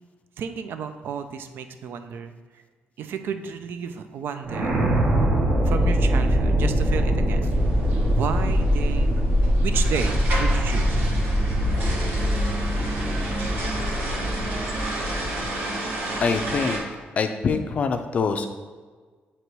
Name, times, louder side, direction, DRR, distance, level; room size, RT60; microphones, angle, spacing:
voice 1, 0.4-2.6 3.0-4.8 5.6-7.5 8.1-9.2 9.6-11.0, right 7 dB, 70° right, 9 dB, 0.4 m, -32 dB
sound 1, 4.4-15.5, equal, 45° right, 0.9 m, -23 dB
sound 2, 7.5-16.8, right 2 dB, 85° right, 1.4 m, -31 dB
voice 2, 16.2-16.8 17.2-18.5, left 5 dB, 35° left, 7 dB, 0.4 m, -24 dB
7.9 x 3.0 x 4.6 m, 1.4 s
wide cardioid pair, 180°, 4 cm